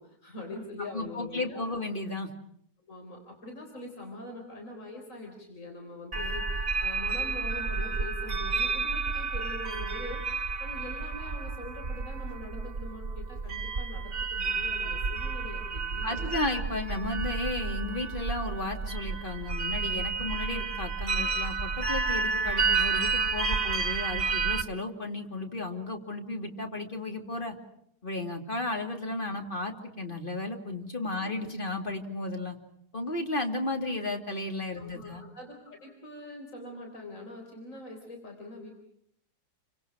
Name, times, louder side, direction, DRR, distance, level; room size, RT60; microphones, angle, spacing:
voice 1, 0.0-2.0 2.9-16.4 31.2-31.3 34.8-38.7, left 2 dB, 55° left, 2 dB, 4.4 m, -43 dB
voice 2, 0.8-2.3 16.0-27.6 28.0-32.6 32.9-35.2, left 2 dB, 35° left, 4 dB, 2.8 m, -34 dB
sound 1, 6.1-24.6, right 4 dB, 40° right, 1.4 m, -31 dB
29.5 x 25.0 x 6.2 m, 0.70 s
omnidirectional pair, 1.6 m